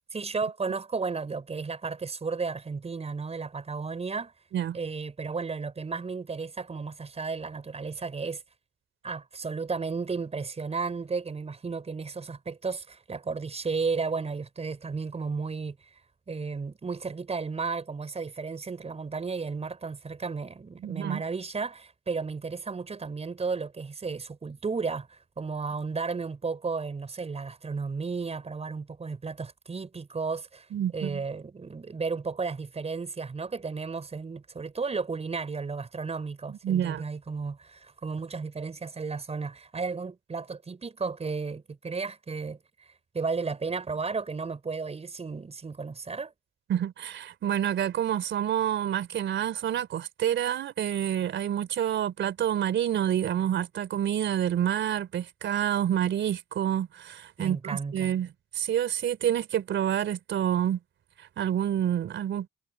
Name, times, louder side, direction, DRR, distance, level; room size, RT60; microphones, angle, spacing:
voice 1, 0.1-4.3 4.7-8.4 9.0-16.0 16.3-30.7 30.9-42.9 43.1-46.3 57.4-58.1, right 4 dB, 30° right, 5.6 m, -33 dB
voice 2, 20.8-21.2 30.7-31.2 36.5-37.0 46.7-60.8 61.2-62.5, right 10 dB, 70° right, 3.6 m, -28 dB
cardioid pair, 90°, 20 cm